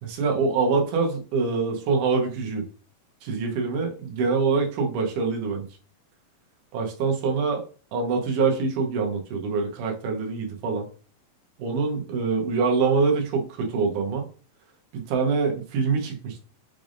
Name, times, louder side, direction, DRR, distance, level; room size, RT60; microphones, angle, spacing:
voice 1, 0.0-2.6 3.2-5.7 6.7-7.6 7.9-10.9 11.6-14.3 14.9-16.4, right 4 dB, 70° right, 2 dB, 2.3 m, -25 dB
6.1 x 3.4 x 2.5 m, 0.38 s
omnidirectional pair, 4.1 m